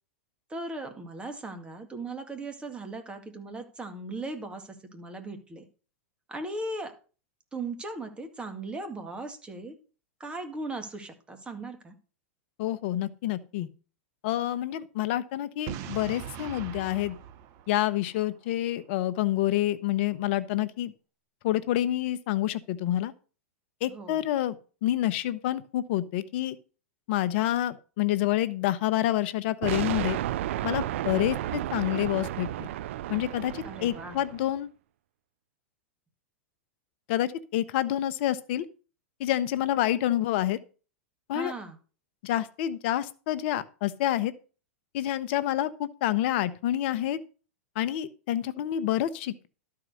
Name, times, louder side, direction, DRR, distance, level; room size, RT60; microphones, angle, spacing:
voice 1, 0.5-5.6 6.3-6.9 7.5-9.8 10.2-12.0 23.9-24.2 33.6-34.2 41.3-41.8, right 2 dB, 15° right, 6 dB, 2.0 m, -38 dB
voice 2, 12.6-13.7 14.2-17.2 17.7-20.9 21.4-23.1 23.8-24.6 24.8-26.6 27.1-30.2 30.6-32.7 33.1-34.7 37.1-38.6 39.2-40.6 41.3-41.5 42.2-44.3 44.9-47.2 47.8-49.5, left 13 dB, 55° left, 14 dB, 0.9 m, -28 dB
Boom, 15.7-18.5, right 9 dB, 45° right, 1.0 m, -41 dB
sound 1, 29.6-34.5, right 13 dB, 65° right, 0.4 m, -32 dB
12.5 x 4.8 x 6.3 m, 0.37 s
hypercardioid pair, 110°, 7 cm